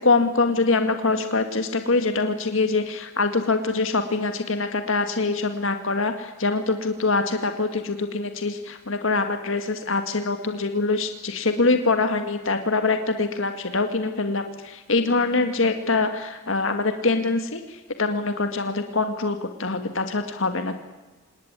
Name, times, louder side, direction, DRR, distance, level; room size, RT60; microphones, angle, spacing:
voice 1, 0.0-20.8, left 3 dB, 65° left, 7 dB, 1.9 m, -24 dB
27.0 x 18.5 x 9.6 m, 1.2 s
head